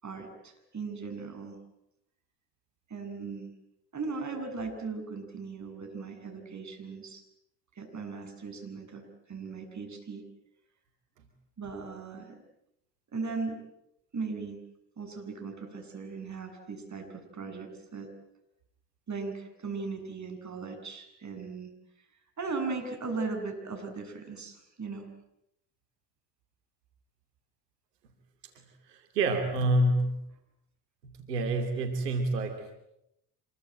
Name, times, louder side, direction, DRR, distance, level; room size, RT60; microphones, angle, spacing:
voice 1, 0.0-1.6 2.9-3.5 3.9-7.2 7.7-10.2 11.6-12.4 13.1-13.6 14.1-14.6 15.0-18.1 19.1-21.7 22.4-25.1, right 4 dB, 35° right, 5 dB, 7.9 m, -38 dB
voice 2, 28.5-30.1 31.0-32.7, right 1 dB, 90° right, 6 dB, 2.8 m, -28 dB
26.5 x 23.0 x 9.2 m, 0.82 s
hypercardioid pair, 65°, 47 cm